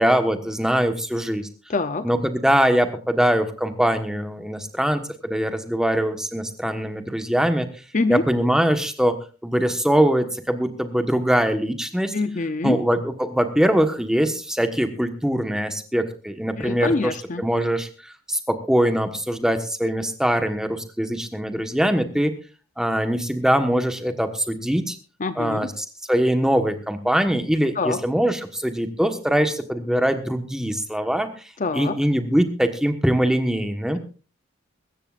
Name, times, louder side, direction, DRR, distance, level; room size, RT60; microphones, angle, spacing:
voice 1, 0.0-1.5 2.0-7.7 8.1-12.1 12.6-22.3 22.8-25.0 25.4-31.3 31.7-34.0, equal, 5° right, 7 dB, 1.3 m, -22 dB
voice 2, 1.7-2.1 7.9-8.2 12.1-12.8 16.6-17.4 25.2-25.7 27.8-28.0 31.6-32.0, left 3 dB, 40° left, 11 dB, 0.6 m, -25 dB
24.0 x 13.5 x 2.5 m, 0.35 s
head